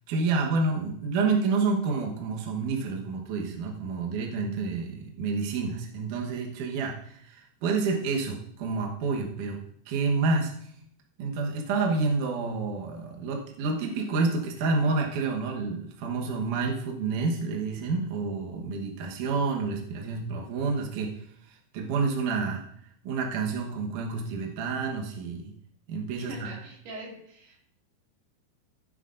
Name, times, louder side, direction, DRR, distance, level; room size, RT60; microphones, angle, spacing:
voice 1, 0.1-9.6 9.9-10.5 11.2-21.1 21.5-22.6 23.0-25.5 25.9-26.5, right 4 dB, 65° right, 0 dB, 2.4 m, -29 dB
voice 2, 26.1-27.6, right 2 dB, 85° right, -2 dB, 4.4 m, -42 dB
15.0 x 9.8 x 2.6 m, 0.68 s
omnidirectional pair, 4.5 m